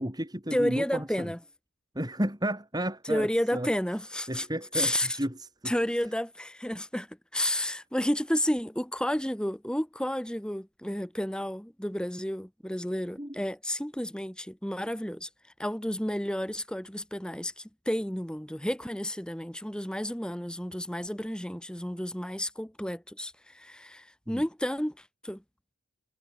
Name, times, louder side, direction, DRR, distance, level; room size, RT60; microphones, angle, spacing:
voice 1, 0.0-1.3 1.9-3.7 4.3-5.7 13.2-13.4 24.3-24.4, right 1 dB, 20° right, 4.9 m, -33 dB
voice 2, 0.5-1.4 3.1-4.5 4.7-5.2 5.6-15.3 15.6-25.4, equal, 5° left, 1.3 m, -31 dB
head